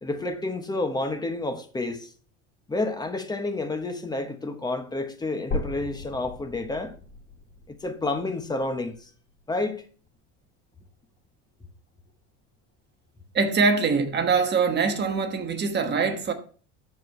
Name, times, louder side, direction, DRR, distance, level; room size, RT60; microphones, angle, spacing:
voice 1, 0.0-2.1 2.7-6.9 7.7-9.1 9.5-9.8, left 2 dB, 10° left, 1.1 m, -30 dB
sound 1, 5.5-9.5 10.1-10.2 10.7-10.8 11.2-11.3 12.1-12.2, left 2 dB, 30° left, 2.6 m, -37 dB
voice 2, 13.3-16.3, right 5 dB, 30° right, 1.3 m, -23 dB
13.0 x 4.6 x 3.2 m
supercardioid pair, 120°, 33 cm